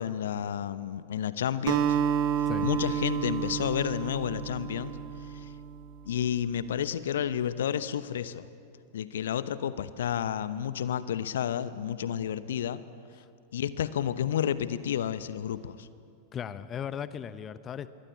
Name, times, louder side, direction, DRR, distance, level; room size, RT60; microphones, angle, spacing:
voice 1, 0.0-2.0 2.4-5.0 5.2-5.5 6.1-8.5 8.9-12.8 13.5-15.9, left 9 dB, 60° left, 15 dB, 0.9 m, -31 dB
Acoustic guitar, 1.7-6.1, right 8 dB, 40° right, 1.3 m, -30 dB
voice 2, 16.3-17.9, left 8 dB, 25° left, 15 dB, 0.9 m, -36 dB
25.5 x 22.5 x 8.4 m, 2.4 s
figure-of-eight pair, 90°, 0 cm